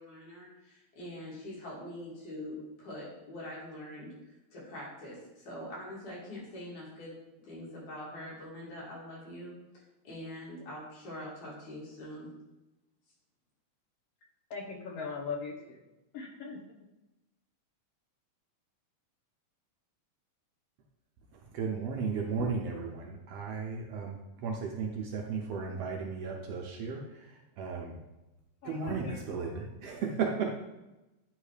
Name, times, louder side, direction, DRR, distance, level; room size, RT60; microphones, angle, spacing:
voice 1, 0.0-7.1 7.4-9.5 10.0-12.3, left 1 dB, 80° left, -6 dB, 3.9 m, -44 dB
voice 2, 14.5-15.8 16.1-16.6 28.6-29.2, left 4 dB, 65° left, 0 dB, 1.9 m, -39 dB
voice 3, 21.3-28.0 28.6-30.5, right 5 dB, 70° right, 0 dB, 1.6 m, -35 dB
9.6 x 3.2 x 4.9 m, 1.0 s
omnidirectional pair, 3.4 m